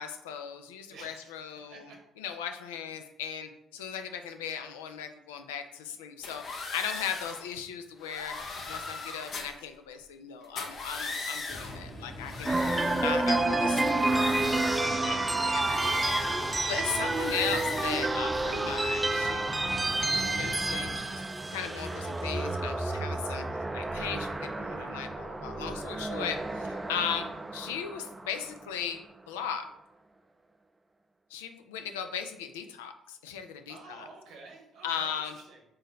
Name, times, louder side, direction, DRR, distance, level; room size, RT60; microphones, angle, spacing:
voice 1, 0.0-8.3 8.7-12.6 13.0-16.4 16.7-19.4 20.1-21.2 21.5-23.5 23.7-29.0 29.3-29.6 31.3-34.1 34.8-35.4, left 8 dB, 85° left, 7 dB, 0.3 m, -37 dB
voice 2, 0.9-2.0 12.5-12.9 21.5-21.8 33.7-35.6, right 3 dB, 70° right, 1 dB, 1.0 m, -51 dB
sound 1, 6.2-7.5 8.0-9.6 10.4-11.8 12.2-13.5 13.8-15.0 15.5-16.6 16.9-18.1, left 3 dB, 60° left, 0.7 m, -39 dB
sound 2, 11.5-21.0, left 1 dB, 40° left, 1.2 m, -43 dB
sound 3, 12.4-28.6, right 2 dB, 20° right, 0.4 m, -30 dB
3.7 x 2.7 x 4.0 m, 0.83 s
hypercardioid pair, 50°, 0 cm